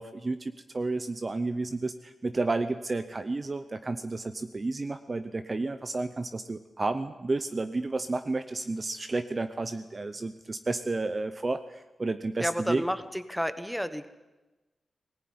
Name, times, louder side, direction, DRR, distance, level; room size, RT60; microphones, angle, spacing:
voice 1, 0.0-12.8, right 3 dB, 25° right, 10 dB, 0.7 m, -31 dB
voice 2, 12.4-14.1, equal, ahead, 11 dB, 1.1 m, -31 dB
19.5 x 18.5 x 9.5 m, 1.1 s
wide cardioid pair, 175°, 0 cm